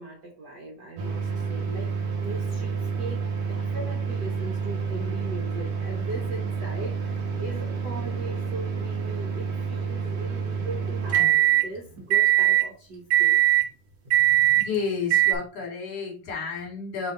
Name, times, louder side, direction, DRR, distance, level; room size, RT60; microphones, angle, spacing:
voice 1, 0.0-1.9 2.2-3.2 3.5-11.4 11.6-13.4, right 2 dB, 75° right, 1 dB, 0.9 m, -39 dB
sound 1, 1.0-11.7 12.1-12.7 13.1-13.7 14.1-14.7 15.1-15.3, right 10 dB, 55° right, 1.5 m, -25 dB
voice 2, 14.5-17.1, left 5 dB, 50° left, 0 dB, 3.0 m, -31 dB
6.3 x 4.0 x 3.9 m, 0.36 s
omnidirectional pair, 3.7 m